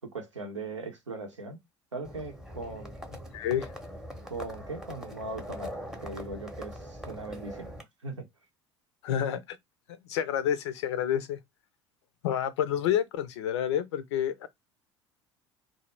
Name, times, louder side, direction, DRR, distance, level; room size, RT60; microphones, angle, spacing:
voice 1, 0.1-1.6 1.9-2.9 4.3-7.7 8.0-8.3, right 3 dB, 85° right, 0.7 m, -39 dB
Livestock farm animals working animals, 2.0-7.8, equal, 5° right, 0.7 m, -42 dB
voice 2, 3.3-3.7 9.0-9.6 10.1-11.4 12.2-14.5, left 10 dB, 70° left, 0.5 m, -29 dB
2.1 x 2.0 x 3.1 m
figure-of-eight pair, 65°, 15 cm